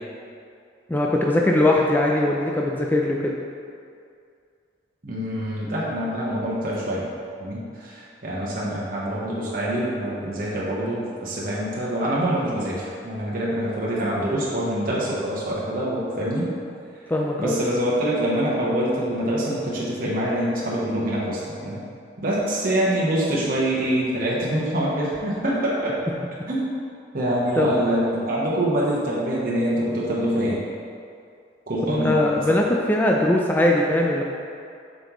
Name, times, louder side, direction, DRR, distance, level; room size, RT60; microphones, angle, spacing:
voice 1, 0.9-3.3 17.1-17.6 27.6-27.7 31.9-34.2, left 1 dB, 10° left, -1 dB, 0.4 m, -20 dB
voice 2, 5.0-7.1 7.4-16.5 17.4-21.8 22.2-25.9 26.5-26.6 27.1-30.6 31.7-32.6, right 1 dB, 50° right, -6 dB, 1.1 m, -25 dB
7.5 x 5.2 x 3.1 m, 2.3 s
head